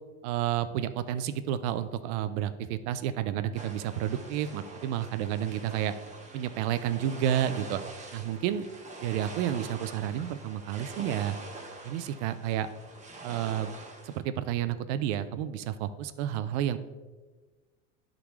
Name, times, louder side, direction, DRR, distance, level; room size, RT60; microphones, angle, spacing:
voice 1, 0.2-5.9 6.3-7.8 8.1-8.6 9.0-11.4 11.8-12.7 13.2-13.7 14.0-16.8, right 11 dB, 70° right, 13 dB, 0.7 m, -30 dB
sound 1, 3.5-14.2, right 2 dB, 20° right, 1.5 m, -45 dB
11.5 x 3.9 x 3.1 m, 1.3 s
supercardioid pair, 100°, 36 cm